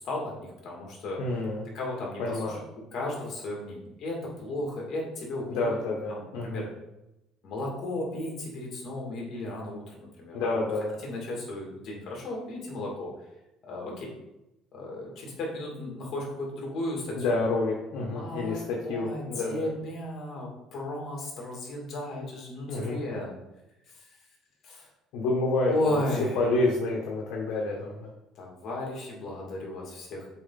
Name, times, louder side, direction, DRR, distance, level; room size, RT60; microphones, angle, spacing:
voice 1, 0.0-1.2 1.7-2.6 2.9-5.7 6.1-6.7 7.4-10.6 11.0-13.1 13.7-14.1 14.7-17.4 17.9-23.3 23.9-24.1 24.6-24.9 25.6-26.5 28.4-30.3, left 1 dB, 45° left, -1 dB, 2.5 m, -34 dB
voice 2, 1.2-1.6 2.2-2.6 5.5-6.6 10.3-11.0 17.2-19.7 22.7-23.0 25.1-26.0 26.3-28.1, left 2 dB, 75° left, -1 dB, 1.2 m, -28 dB
7.5 x 4.3 x 4.1 m, 0.92 s
cardioid pair, 140°, 0 cm